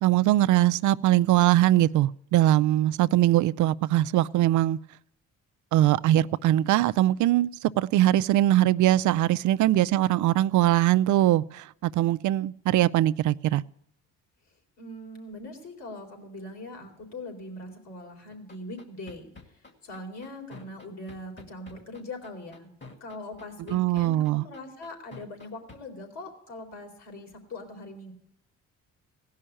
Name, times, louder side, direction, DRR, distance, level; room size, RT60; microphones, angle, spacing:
voice 1, 0.0-4.8 5.7-13.6 23.7-24.4, right 14 dB, 75° right, 0.5 m, -22 dB
voice 2, 14.8-22.7 23.0-28.1, left 1 dB, 65° left, 3.8 m, -41 dB
sound 1, 18.3-25.8, left 3 dB, 40° left, 2.2 m, -47 dB
16.5 x 5.6 x 10.0 m
cardioid pair, 90°, 30 cm